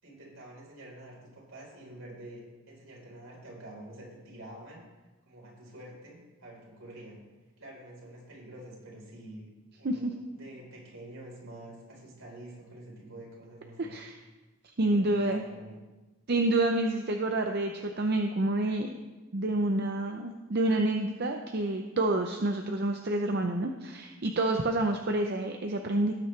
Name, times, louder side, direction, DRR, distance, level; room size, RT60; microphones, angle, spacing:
voice 1, 0.0-4.9 5.3-7.2 7.6-9.4 9.8-14.0 14.8-15.8, right 1 dB, 70° right, -3 dB, 4.2 m, -48 dB
voice 2, 13.8-14.1 14.8-15.4 16.3-18.9 19.3-26.1, right 2 dB, 50° right, 4 dB, 0.7 m, -28 dB
18.0 x 8.7 x 3.3 m, 1.2 s
head